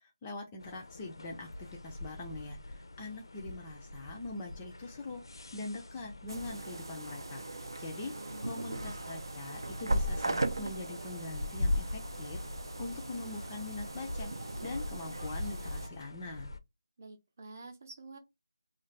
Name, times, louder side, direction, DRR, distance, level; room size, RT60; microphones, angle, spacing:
voice 1, 0.0-8.1 8.4-12.4 12.8-14.3 14.6-16.5, left 2 dB, 15° left, 0.3 m, -43 dB
sound 1, 0.6-16.6, left 2 dB, 80° left, 0.5 m, -42 dB
sound 2, 6.3-15.9, right 2 dB, 90° right, 0.5 m, -38 dB
voice 2, 8.0-8.5 17.0-18.2, right 3 dB, 35° right, 0.6 m, -48 dB
2.5 x 2.4 x 3.1 m
figure-of-eight pair, 170°, 2 cm